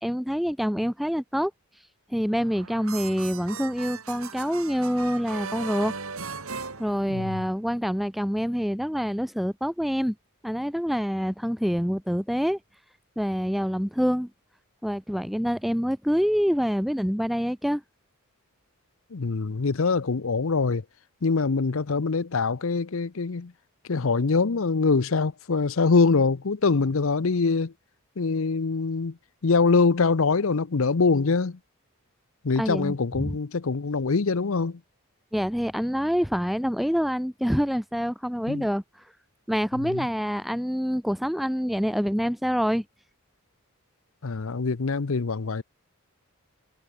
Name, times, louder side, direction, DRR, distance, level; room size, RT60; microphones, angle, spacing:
voice 1, 0.0-1.5 2.1-5.9 6.8-10.2 10.4-12.6 13.2-14.3 14.8-17.8 32.6-33.3 35.3-38.8 39.5-42.8, equal, ahead, 0.5 m, -26 dB
sound 1, 2.3-7.6, right 5 dB, 70° right, 2.7 m, -38 dB
voice 2, 7.1-7.4 19.1-20.8 21.2-23.5 23.9-27.7 28.2-29.2 29.4-31.6 32.4-34.8 38.5-38.7 39.8-40.1 44.2-45.6, left 4 dB, 60° left, 0.7 m, -24 dB
head